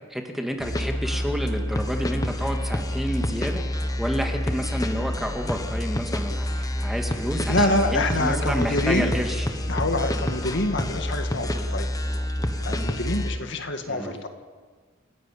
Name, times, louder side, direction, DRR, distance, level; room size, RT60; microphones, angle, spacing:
voice 1, 0.1-3.6 4.0-9.5 13.9-14.3, equal, ahead, 3 dB, 2.0 m, -30 dB
sound 1, 0.6-13.4, left 1 dB, 20° left, 1.2 m, -28 dB
voice 2, 7.5-9.1 9.7-11.9 12.6-14.3, left 2 dB, 60° left, 6 dB, 1.9 m, -26 dB
29.5 x 11.0 x 8.5 m, 1.5 s
head